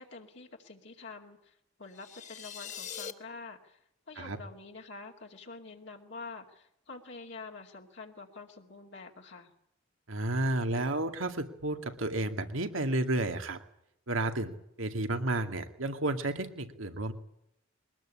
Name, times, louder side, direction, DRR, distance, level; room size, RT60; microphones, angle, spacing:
voice 1, 0.0-3.8 4.1-9.5, left 4 dB, 60° left, 1 dB, 2.4 m, -47 dB
sound 1, 1.9-3.1, left 8 dB, 40° left, 1.3 m, -42 dB
voice 2, 10.1-13.6 14.1-17.1, right 2 dB, 85° right, 6 dB, 2.3 m, -32 dB
22.5 x 19.5 x 8.5 m, 0.76 s
head